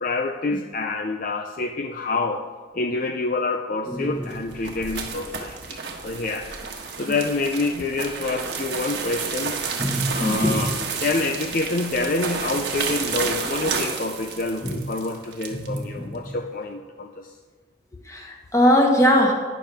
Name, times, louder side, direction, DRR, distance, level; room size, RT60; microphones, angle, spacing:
voice 1, 0.0-2.4 2.7-6.6 7.0-9.6 10.1-10.7 11.0-17.3, left 3 dB, 45° left, 5 dB, 0.5 m, -27 dB
voice 2, 3.9-4.3 7.1-7.2 9.8-10.7 14.6-14.8 15.5-16.3 18.0-19.3, equal, 15° left, 0 dB, 1.5 m, -21 dB
sound 1, 4.1-15.8, right 5 dB, 60° right, 1.4 m, -31 dB
12.0 x 10.0 x 3.5 m, 1.5 s
head